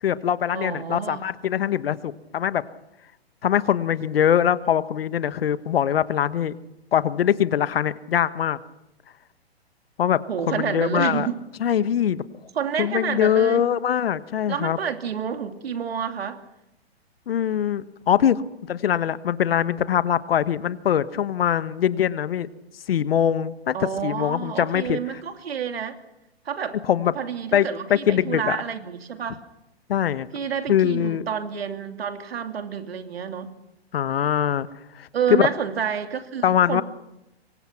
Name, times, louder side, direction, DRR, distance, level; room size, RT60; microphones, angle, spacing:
voice 1, 0.0-2.6 3.4-6.6 6.9-8.6 10.0-10.2 10.5-11.3 11.6-12.2 12.8-14.8 17.3-18.4 18.7-22.5 22.9-25.0 26.9-27.1 27.5-28.6 29.9-30.3 30.7-31.2 33.9-34.7 34.9-35.5 36.4-36.8, left 9 dB, 65° left, 14 dB, 1.4 m, -22 dB
voice 2, 0.5-1.3 10.3-11.3 12.5-13.6 14.5-16.4 23.7-26.0 26.4-26.8 27.1-29.4 30.3-33.5 35.1-36.8, right 7 dB, 70° right, 7 dB, 3.0 m, -29 dB
27.0 x 24.0 x 6.0 m, 0.88 s
hypercardioid pair, 130°, 32 cm